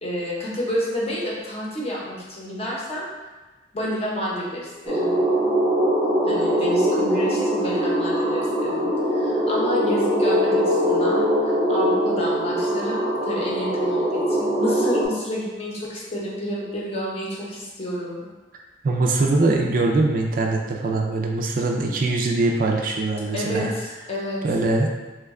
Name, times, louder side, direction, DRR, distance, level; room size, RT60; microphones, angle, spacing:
voice 1, 0.0-3.1 3.7-5.2 6.3-8.8 9.1-18.2 23.3-24.5, equal, 35° left, -5 dB, 0.7 m, -29 dB
sound 1, 4.9-15.1, equal, 15° right, 0.6 m, -22 dB
voice 2, 18.8-23.7 24.4-24.9, right 2 dB, 50° right, 1 dB, 0.4 m, -22 dB
3.0 x 2.2 x 3.5 m, 1.2 s
head